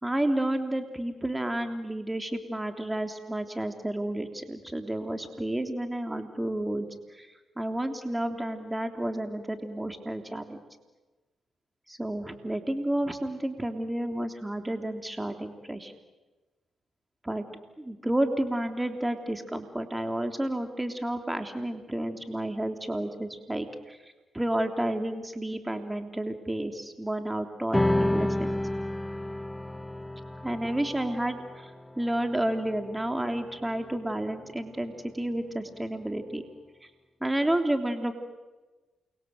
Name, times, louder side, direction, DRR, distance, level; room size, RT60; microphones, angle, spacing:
voice 1, 0.0-7.3 7.6-10.6 11.9-15.9 17.2-17.4 17.8-24.0 24.3-28.6 30.4-31.7 32.0-36.4 37.2-38.1, right 1 dB, 15° right, 6 dB, 3.3 m, -31 dB
sound 1, 27.7-34.5, left 1 dB, 10° left, 0.8 m, -31 dB
29.0 x 23.5 x 7.8 m, 1.2 s
hypercardioid pair, 45°, 0 cm